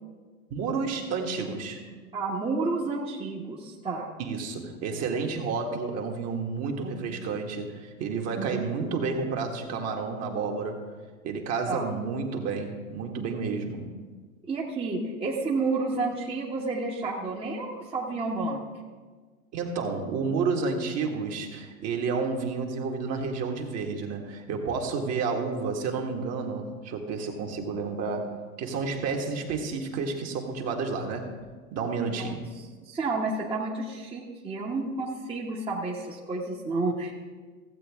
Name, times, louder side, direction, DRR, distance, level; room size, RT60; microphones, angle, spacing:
voice 1, 0.5-1.8 4.2-10.8 11.2-13.9 19.5-31.3 31.7-32.5, right 4 dB, 35° right, 2 dB, 1.6 m, -30 dB
voice 2, 2.1-4.1 8.4-8.6 11.7-11.9 14.4-18.6 32.1-32.3 32.6-37.1, right 3 dB, 15° right, -3 dB, 1.2 m, -30 dB
15.5 x 7.7 x 3.6 m, 1.4 s
hypercardioid pair, 105°, 41 cm